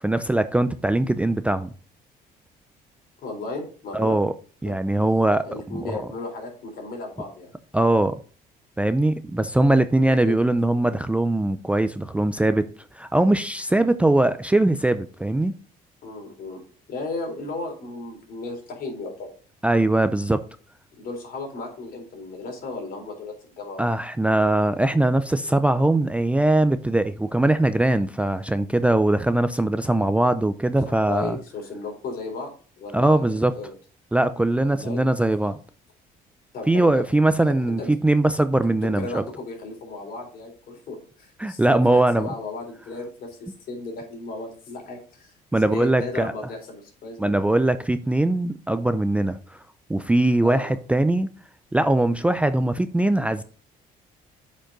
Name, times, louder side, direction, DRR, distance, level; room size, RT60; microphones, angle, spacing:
voice 1, 0.0-1.7 3.9-4.3 4.6-6.0 7.7-8.1 8.8-12.6 12.9-15.5 19.6-20.4 23.8-31.4 32.9-33.5 34.1-35.6 36.7-39.2 41.4-42.3 45.5-46.3 47.2-49.6 49.9-51.3 51.7-53.4, right 1 dB, 5° right, 0.5 m, -21 dB
voice 2, 3.2-4.2 4.6-4.7 5.4-7.5 9.9-10.3 16.0-16.6 16.9-19.3 21.0-23.9 30.8-32.5 32.8-33.7 34.7-35.0 36.5-37.0 37.5-37.9 38.8-45.3 45.6-47.3 50.4-50.7, left 3 dB, 60° left, 4.0 m, -35 dB
8.6 x 5.3 x 3.9 m
cardioid pair, 110°, 17 cm